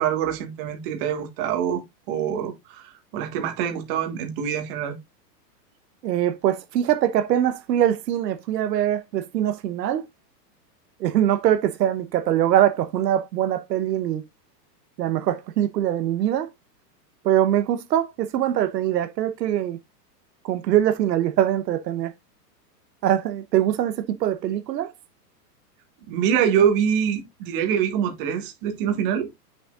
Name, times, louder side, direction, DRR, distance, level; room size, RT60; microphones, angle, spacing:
voice 1, 0.0-5.0 26.1-29.3, right 8 dB, 30° right, 1.6 m, -25 dB
voice 2, 6.0-10.0 11.0-14.2 15.0-16.5 17.2-19.8 20.4-22.1 23.0-24.9, right 11 dB, 85° right, 1.1 m, -23 dB
8.0 x 6.4 x 2.4 m
supercardioid pair, 175°, 49 cm